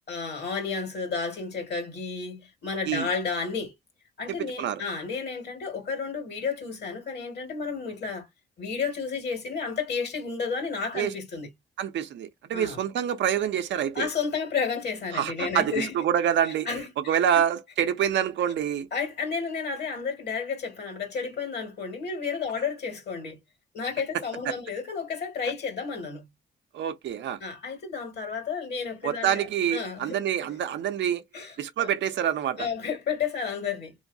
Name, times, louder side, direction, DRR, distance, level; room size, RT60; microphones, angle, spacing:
voice 1, 0.1-3.7 4.2-8.3 8.6-11.5 12.5-12.8 14.0-16.0 16.7-16.9 18.9-23.4 23.7-26.3 27.4-29.4 29.7-30.2 31.3-31.9 32.6-34.0, left 5 dB, 55° left, 1.8 m, -31 dB
voice 2, 11.8-14.1 15.1-16.7 17.0-18.9 24.1-24.5 26.7-27.4 29.0-31.2 31.6-32.7, right 9 dB, 65° right, 0.6 m, -26 dB
3.1 x 2.9 x 2.6 m
cardioid pair, 90°, 20 cm